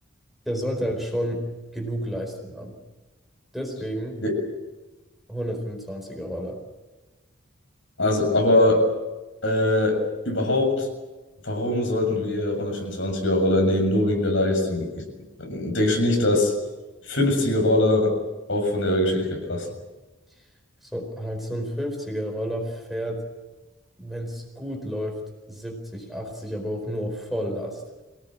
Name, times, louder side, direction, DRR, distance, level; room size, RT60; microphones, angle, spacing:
voice 1, 0.4-1.5 1.7-2.7 3.5-4.2 5.3-6.6 20.8-23.2 24.0-25.2 25.5-28.0, equal, ahead, 2 dB, 4.6 m, -31 dB
voice 2, 8.0-8.9 9.4-10.9 11.4-15.0 15.4-16.5 17.1-18.2 18.5-19.7, left 1 dB, 65° left, 3 dB, 7.2 m, -22 dB
26.5 x 18.5 x 8.9 m, 1.1 s
head